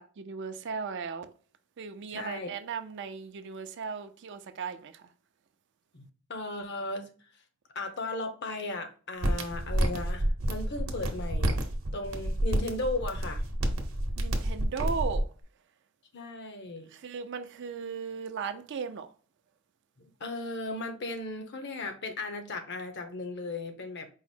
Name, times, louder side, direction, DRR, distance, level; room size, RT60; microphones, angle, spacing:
voice 1, 0.0-1.3 1.8-5.1 14.2-15.3 16.8-19.1, right 5 dB, 60° right, 0.4 m, -37 dB
voice 2, 2.1-2.5 5.9-6.0 6.3-7.1 7.7-11.6 11.9-13.4 16.1-16.9 20.0-24.1, left 2 dB, 55° left, 0.8 m, -36 dB
sound 1, 9.2-15.2, right 1 dB, 80° right, 0.9 m, -29 dB
4.7 x 2.0 x 4.3 m
head